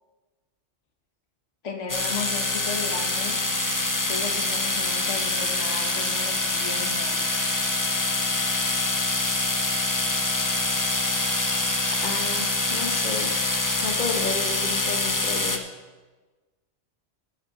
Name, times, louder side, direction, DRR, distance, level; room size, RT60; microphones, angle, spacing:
voice 1, 1.6-3.4 4.1-7.2, left 4 dB, 80° left, 4 dB, 1.5 m, -35 dB
sound 1, 1.9-15.6, left 2 dB, 20° left, 0.7 m, -25 dB
voice 2, 12.0-13.3 13.8-15.6, left 4 dB, 40° left, 4 dB, 1.1 m, -32 dB
11.0 x 8.9 x 4.9 m, 1.3 s
omnidirectional pair, 1.2 m